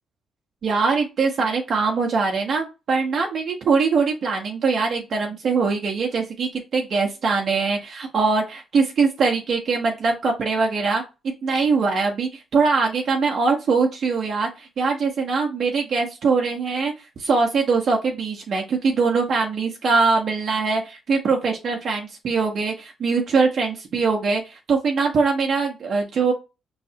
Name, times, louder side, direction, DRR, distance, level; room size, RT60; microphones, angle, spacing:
voice 1, 0.6-16.9 17.2-26.3, right 4 dB, 55° right, 0 dB, 1.0 m, -22 dB
5.3 x 3.2 x 2.8 m, 0.27 s
cardioid pair, 90°, 0 cm